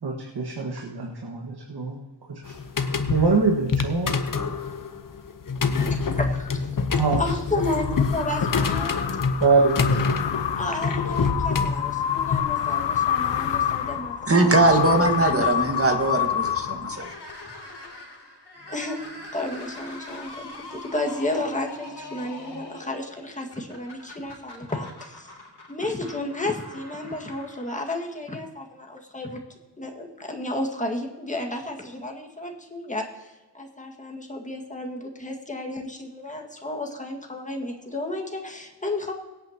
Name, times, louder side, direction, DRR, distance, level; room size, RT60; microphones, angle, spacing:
voice 1, 0.0-2.0 2.3-2.6 3.1-4.2 7.0-7.2 9.4-9.8, right 4 dB, 65° right, 0 dB, 1.7 m, -23 dB
sound 1, 2.4-12.4, left 4 dB, 50° left, 1.0 m, -26 dB
voice 2, 5.8-6.8 7.1-9.2 10.5-14.7 15.0-15.6 17.5-17.6 18.7-25.3 25.7-29.4 29.8-39.1, left 2 dB, 15° left, 1 dB, 1.8 m, -32 dB
sound 2, 7.6-17.3, left 9 dB, 85° left, 0.7 m, -28 dB
voice 3, 14.3-17.1, right 2 dB, 30° right, 4 dB, 1.7 m, -21 dB
sound 3, 16.9-28.2, left 2 dB, 70° left, 3.1 m, -43 dB
23.5 x 8.8 x 2.9 m, 1.2 s
wide cardioid pair, 110°, 42 cm